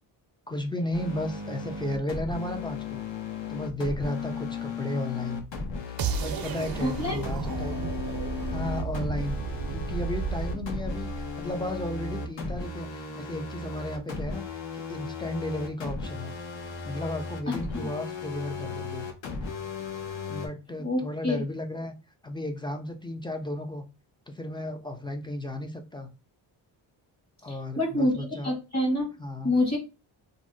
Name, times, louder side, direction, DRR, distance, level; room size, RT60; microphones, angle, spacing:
voice 1, 0.5-3.0 3.5-5.4 6.2-7.9 8.5-9.4 9.7-11.1 11.4-16.3 16.8-19.0 20.3-21.9 22.2-23.8 24.3-26.1 27.4-28.5 29.2-29.5, left 1 dB, 10° left, 5 dB, 0.3 m, -34 dB
sound 1, 0.9-20.5, left 4 dB, 65° left, 0.9 m, -36 dB
sound 2, 6.0-12.0, right 5 dB, 50° right, 0.5 m, -33 dB
voice 2, 6.8-7.2 17.5-17.9 20.8-21.4 27.5-29.1 29.4-29.8, left 1 dB, 35° left, 1 dB, 1.1 m, -27 dB
2.6 x 2.0 x 3.7 m, 0.29 s
cardioid pair, 100°, 47 cm